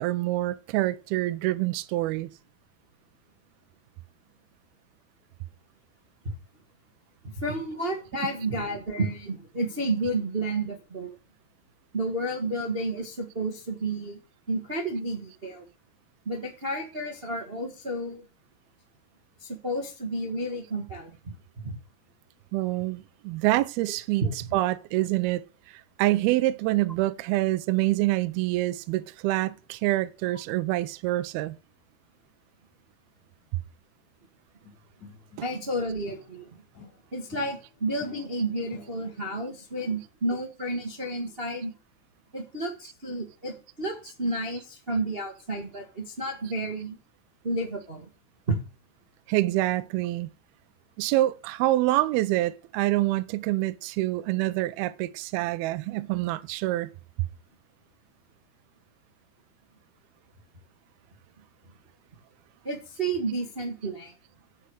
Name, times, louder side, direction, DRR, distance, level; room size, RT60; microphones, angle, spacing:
voice 1, 0.0-2.3 8.2-8.3 22.5-24.2 24.5-31.6 49.3-50.3 51.0-56.9, right 17 dB, 80° right, 2.4 m, -26 dB
voice 2, 7.2-11.1 11.9-14.2 14.5-15.6 16.2-18.2 19.4-21.3 21.6-21.7 24.2-24.3 35.4-36.5 37.1-41.7 42.3-47.0 47.4-48.1 48.5-48.6 62.6-64.1, right 2 dB, 50° right, 0.6 m, -31 dB
sound 1, 34.6-36.4 36.7-39.3, left 4 dB, 45° left, 4.2 m, -51 dB
10.0 x 8.2 x 6.5 m
omnidirectional pair, 4.8 m